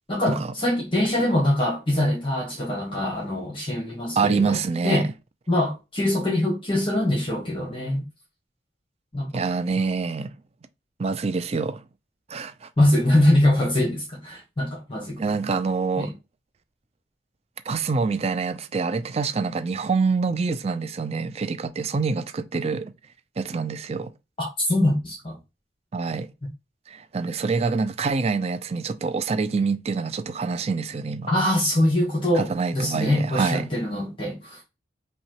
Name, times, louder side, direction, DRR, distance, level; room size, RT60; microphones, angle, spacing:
voice 1, 0.1-4.6 4.8-5.1 5.5-8.0 9.1-9.4 12.8-15.2 16.0-16.1 24.4-25.4 26.4-26.5 31.3-34.6, left 1 dB, 30° left, 1.1 m, -23 dB
voice 2, 4.2-5.1 9.3-10.3 11.0-11.8 12.3-12.7 15.2-16.1 17.7-22.9 23.4-24.1 25.9-26.3 26.9-31.3 32.3-33.7, right 4 dB, 35° right, 0.4 m, -26 dB
5.5 x 2.3 x 2.9 m
head